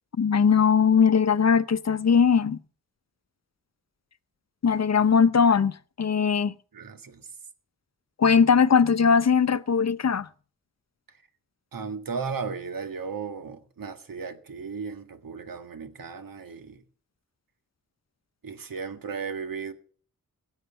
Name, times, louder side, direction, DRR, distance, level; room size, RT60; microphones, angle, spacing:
voice 1, 0.2-2.6 4.6-6.6 8.2-10.3, left 6 dB, 50° left, 0.7 m, -20 dB
voice 2, 6.7-7.3 11.1-11.2 11.7-16.8 18.4-19.7, right 5 dB, 80° right, 1.9 m, -35 dB
16.5 x 8.1 x 7.6 m
wide cardioid pair, 80°, 33 cm